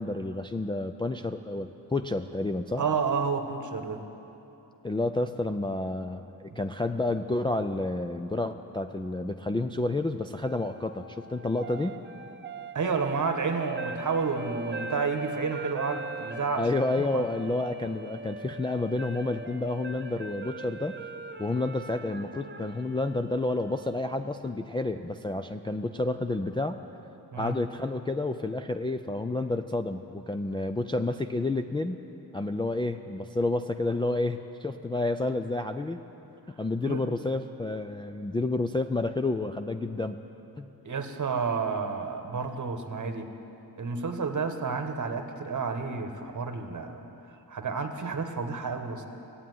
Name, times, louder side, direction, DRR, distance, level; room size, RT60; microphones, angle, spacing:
voice 1, 0.0-2.8 4.8-12.0 16.6-21.0 21.4-26.8 27.4-32.0 32.3-36.0 36.6-40.2 40.6-40.7, left 2 dB, 15° left, 5 dB, 0.3 m, -30 dB
voice 2, 2.8-4.0 6.5-6.6 12.7-16.7 17.0-17.3 27.3-27.6 36.8-37.0 40.8-43.3 43.8-47.0 47.5-49.0, right 5 dB, 45° right, 6 dB, 1.2 m, -30 dB
sound 1, 10.4-24.5, right 3 dB, 25° right, 0.7 m, -41 dB
14.5 x 8.7 x 9.2 m, 3.0 s
wide cardioid pair, 105°, 41 cm